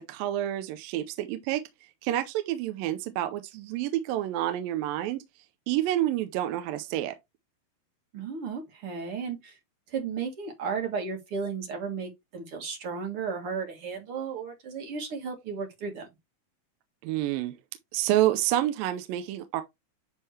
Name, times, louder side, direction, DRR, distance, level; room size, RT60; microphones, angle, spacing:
voice 1, 0.1-1.6 2.0-5.2 5.7-7.2 17.0-17.5 17.9-19.6, right 13 dB, 80° right, 2.3 m, -28 dB
voice 2, 8.1-9.6 9.9-16.1, right 5 dB, 45° right, 2.2 m, -34 dB
9.9 x 3.7 x 3.2 m
omnidirectional pair, 4.3 m